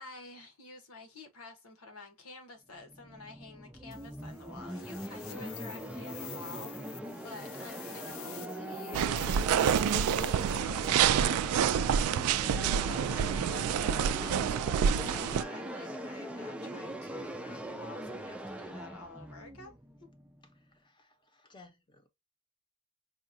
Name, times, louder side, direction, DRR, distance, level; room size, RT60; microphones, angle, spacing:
voice 1, 0.0-7.0 7.2-19.7, left 2 dB, 90° left, 1.3 m, -50 dB
sound 1, 2.8-20.6, right 1 dB, 5° right, 0.4 m, -41 dB
sound 2, 3.9-11.1, left 10 dB, 70° left, 0.6 m, -48 dB
sound 3, 8.9-15.4, right 8 dB, 80° right, 0.3 m, -28 dB
voice 2, 20.7-22.1, left 3 dB, 20° left, 0.7 m, -58 dB
4.9 x 2.4 x 2.6 m
head